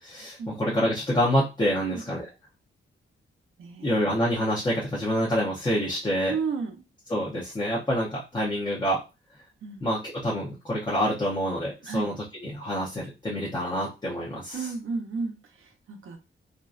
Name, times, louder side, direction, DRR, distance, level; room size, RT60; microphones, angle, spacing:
voice 1, 0.0-2.2 3.8-6.4 7.1-9.0 9.8-14.7, equal, 20° left, -5 dB, 0.6 m, -27 dB
voice 2, 3.6-3.9 6.3-6.8 9.6-9.8 11.8-12.1 14.5-16.2, right 5 dB, 75° right, 3 dB, 0.7 m, -32 dB
2.5 x 2.2 x 2.4 m, 0.28 s
wide cardioid pair, 180°, 21 cm